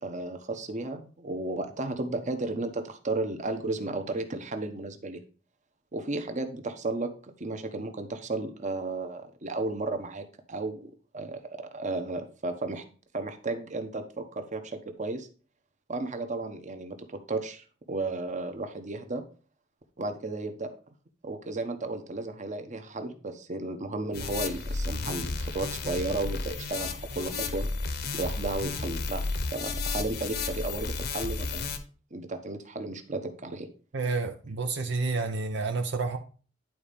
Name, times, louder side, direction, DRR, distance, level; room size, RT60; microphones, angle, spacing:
voice 1, 0.0-5.2 5.9-7.1 7.4-12.8 13.1-15.3 15.9-19.2 20.0-20.7 21.2-27.7 28.1-31.7 32.1-33.7, right 2 dB, 40° right, 7 dB, 1.1 m, -34 dB
sound 1, 24.1-31.8, left 3 dB, 55° left, 1.0 m, -33 dB
voice 2, 33.9-36.2, right 3 dB, 65° right, 5 dB, 0.8 m, -29 dB
10.5 x 4.3 x 5.2 m, 0.38 s
head